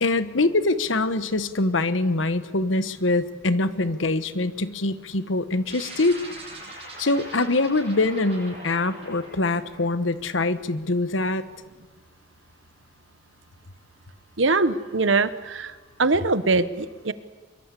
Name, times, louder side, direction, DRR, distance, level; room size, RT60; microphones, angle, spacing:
voice 1, 0.0-6.2 7.0-11.4, left 2 dB, 85° left, 12 dB, 1.3 m, -24 dB
sound 1, 5.6-10.3, right 1 dB, 30° right, 7.9 m, -42 dB
voice 2, 14.4-15.7 16.0-17.1, right 3 dB, 80° right, 13 dB, 1.2 m, -22 dB
23.5 x 23.0 x 8.4 m, 1.3 s
head